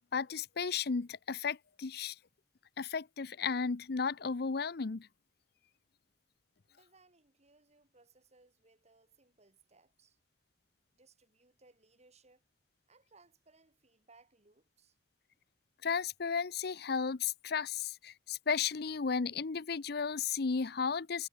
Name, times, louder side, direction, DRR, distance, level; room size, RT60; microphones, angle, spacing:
voice 1, 0.1-2.2 2.8-5.1 15.8-21.3, left 5 dB, 60° left, 0.7 m, -34 dB
voice 2, 6.7-10.2 10.9-12.4 12.9-15.0, right 3 dB, 40° right, 4.7 m, -65 dB
head